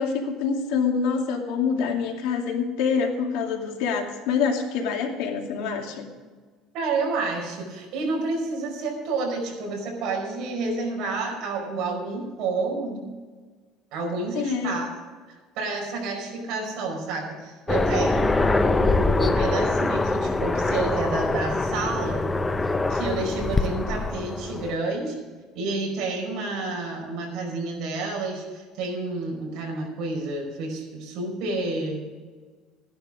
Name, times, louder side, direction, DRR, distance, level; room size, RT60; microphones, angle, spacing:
voice 1, 0.0-6.1 14.3-14.8, left 6 dB, 80° left, 2 dB, 2.4 m, -26 dB
voice 2, 6.7-13.1 13.9-14.9 15.3-22.3 22.9-25.2 25.5-32.1, right 3 dB, 55° right, 0 dB, 5.1 m, -29 dB
Aircraft, 17.7-24.8, left 2 dB, 10° left, 0.5 m, -24 dB
14.5 x 11.5 x 5.1 m, 1.4 s
cardioid pair, 180°, 0 cm